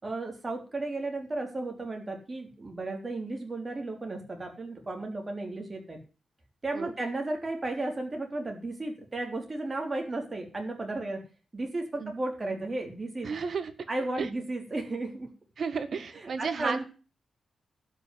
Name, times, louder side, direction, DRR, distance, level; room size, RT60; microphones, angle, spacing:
voice 1, 0.0-6.0 6.6-11.2 11.5-13.3 13.9-15.3 16.1-16.8, right 2 dB, 25° right, 2 dB, 3.6 m, -34 dB
voice 2, 13.2-13.7 14.2-14.3 15.6-16.8, right 5 dB, 50° right, 10 dB, 1.6 m, -32 dB
12.0 x 6.1 x 9.4 m, 0.35 s
wide cardioid pair, 150°, 0 cm